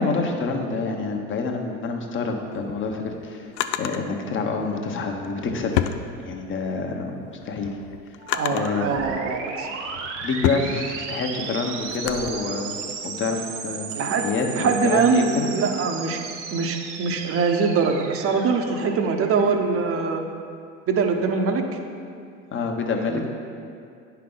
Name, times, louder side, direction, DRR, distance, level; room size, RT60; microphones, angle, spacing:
voice 1, 0.0-3.5 3.8-5.7 6.2-7.7 8.5-8.9 10.2-15.5 22.5-23.3, left 4 dB, 35° left, 3 dB, 1.1 m, -27 dB
Drawer open or close, 2.4-4.0 5.0-6.7 7.1-8.8 9.5-12.3, left 11 dB, 65° left, 0.5 m, -30 dB
sound 1, 8.2-19.9, right 5 dB, 75° right, 0.9 m, -35 dB
voice 2, 8.3-9.7 14.0-14.2 14.5-16.2 16.5-20.2 20.9-21.6 23.0-23.3, right 5 dB, 40° right, 5 dB, 0.9 m, -23 dB
9.4 x 5.7 x 3.9 m, 2.4 s
hypercardioid pair, 85°, 36 cm